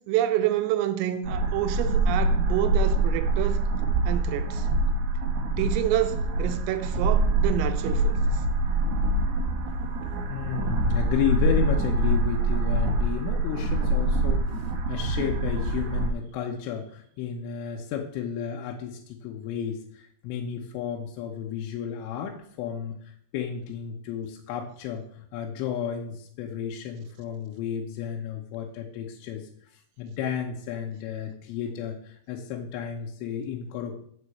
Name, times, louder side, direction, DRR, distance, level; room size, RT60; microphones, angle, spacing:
voice 1, 0.1-3.6 4.1-4.7 5.6-8.2, right 12 dB, 85° right, 3.5 m, -28 dB
sound 1, 1.2-16.1, right 2 dB, 65° right, 2.9 m, -25 dB
voice 2, 10.3-29.5 30.0-34.0, left 8 dB, 80° left, 3.5 m, -32 dB
8.1 x 6.5 x 7.8 m
omnidirectional pair, 5.8 m